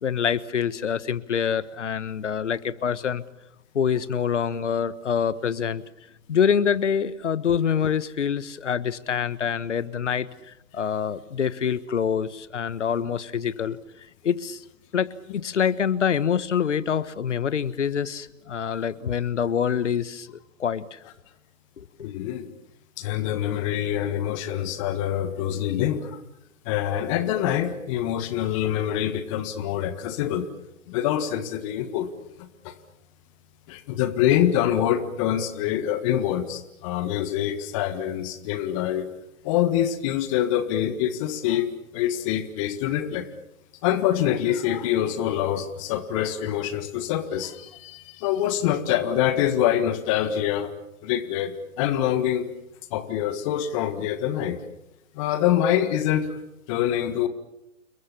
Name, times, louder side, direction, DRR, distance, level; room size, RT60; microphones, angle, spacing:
voice 1, 0.0-3.2 3.7-5.8 6.3-10.3 10.7-13.8 14.2-14.6 14.9-21.0 21.8-22.1, left 7 dB, 55° left, 16 dB, 1.5 m, -26 dB
voice 2, 22.0-22.5 23.0-26.2 26.6-30.5 30.9-32.1 32.4-32.7 33.7-39.0 39.4-43.3 43.8-50.7 51.0-52.5 52.9-54.6 55.1-56.3 56.7-57.3, left 11 dB, 20° left, 10 dB, 1.7 m, -25 dB
30.0 x 21.5 x 7.1 m, 0.87 s
figure-of-eight pair, 140°, 42 cm